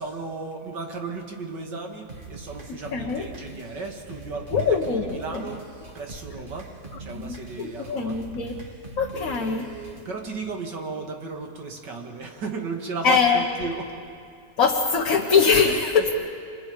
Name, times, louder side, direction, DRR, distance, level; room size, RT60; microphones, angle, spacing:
voice 1, 0.0-5.7 5.9-6.7 7.0-8.2 9.1-14.0 15.9-16.1, right 4 dB, 80° right, 2 dB, 2.7 m, -35 dB
sound 1, 2.1-10.1, right 3 dB, 30° right, 1.9 m, -42 dB
voice 2, 2.7-3.3 4.5-5.4 7.1-8.5 9.0-9.7 13.0-13.4 14.6-16.1, left 5 dB, 55° left, 0 dB, 1.6 m, -22 dB
28.5 x 25.5 x 5.2 m, 2.4 s
omnidirectional pair, 1.9 m